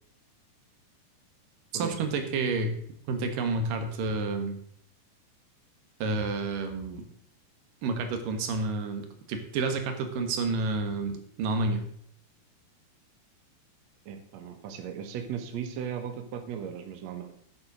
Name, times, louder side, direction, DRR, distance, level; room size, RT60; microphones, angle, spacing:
voice 1, 1.7-2.7 3.1-4.6 6.0-7.0 7.8-11.9, right 3 dB, 65° right, 6 dB, 2.5 m, -30 dB
voice 2, 14.0-17.3, right 8 dB, 85° right, 6 dB, 1.5 m, -37 dB
9.8 x 7.7 x 6.1 m, 0.64 s
omnidirectional pair, 5.0 m